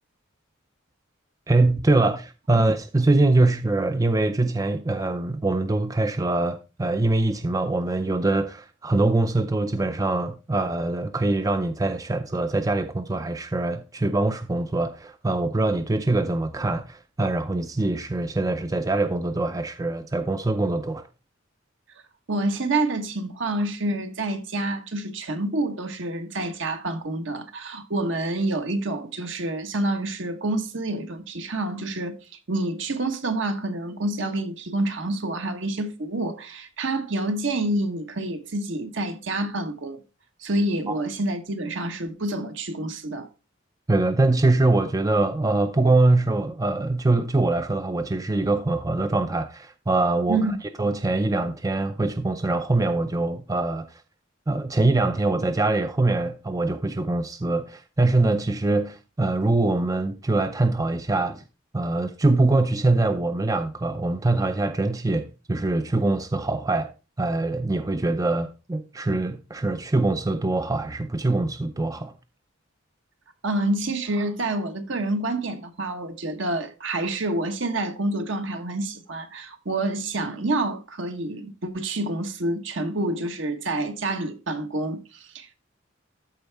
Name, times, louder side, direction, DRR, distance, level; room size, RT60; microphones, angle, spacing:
voice 1, 1.5-21.1 40.9-41.0 43.9-50.4 50.8-54.0 54.5-61.4 61.7-66.9 67.2-72.1, right 2 dB, 15° right, 0.4 m, -23 dB
voice 2, 22.3-32.2 32.5-40.0 40.4-43.3 50.3-50.6 73.4-85.5, right 2 dB, 60° right, 1.1 m, -28 dB
13.5 x 4.5 x 3.3 m
head